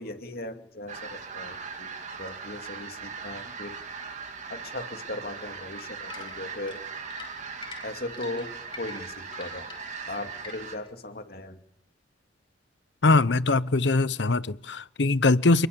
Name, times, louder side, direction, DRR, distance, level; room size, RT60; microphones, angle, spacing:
voice 1, 0.0-3.8 4.5-6.8 7.8-8.5 8.8-9.7 10.1-11.6, left 2 dB, 55° left, 2.5 m, -38 dB
sound 1, 0.9-10.8, right 5 dB, 40° right, 2.8 m, -39 dB
sound 2, 6.1-10.9, left 4 dB, 30° left, 5.1 m, -45 dB
voice 2, 13.0-15.7, left 3 dB, 75° left, 0.9 m, -22 dB
29.0 x 20.5 x 7.0 m
head